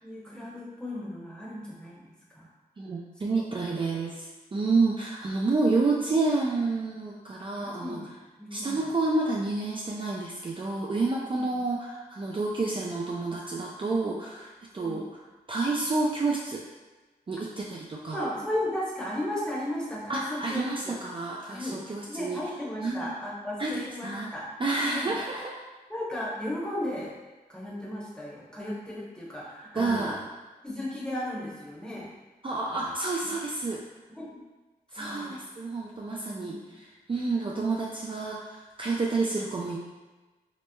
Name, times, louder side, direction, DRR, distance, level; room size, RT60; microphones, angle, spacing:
voice 1, 0.0-2.4 7.3-8.7 12.6-12.7 14.7-15.0 18.1-21.0 21.5-24.5 24.8-25.1 25.9-27.2 27.5-30.1 30.6-32.1 32.8-32.9 34.2-34.4 34.9-35.4 36.1-36.8, left 1 dB, 5° left, -6 dB, 0.9 m, -35 dB
voice 2, 2.8-8.0 8.5-16.6 17.3-18.3 20.1-22.4 22.8-23.1 23.6-24.3 24.6-25.5 29.8-30.2 32.4-33.8 34.9-39.8, right 3 dB, 35° right, -3 dB, 0.3 m, -29 dB
3.1 x 3.0 x 2.2 m, 1.2 s
cardioid pair, 55°, 16 cm